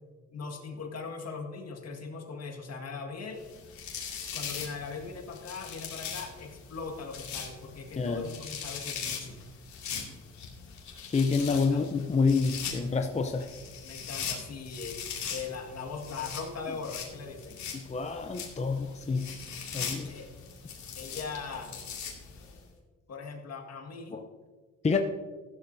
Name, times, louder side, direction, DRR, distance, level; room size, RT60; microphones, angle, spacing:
voice 1, 0.3-3.5 4.3-9.4 11.5-11.9 13.3-13.5 13.8-15.0 15.3-17.6 19.8-20.3 20.9-21.7 23.1-24.2 24.9-25.0, left 5 dB, 55° left, 3 dB, 1.9 m, -40 dB
sound 1, 3.4-22.6, left 6 dB, 70° left, 2.6 m, -41 dB
voice 2, 8.0-8.3 11.1-13.4 17.9-19.3 19.7-20.1 24.1-24.2 24.8-25.0, left 4 dB, 20° left, 5 dB, 0.7 m, -27 dB
14.5 x 12.5 x 2.7 m, 1.4 s
cardioid pair, 90°, 30 cm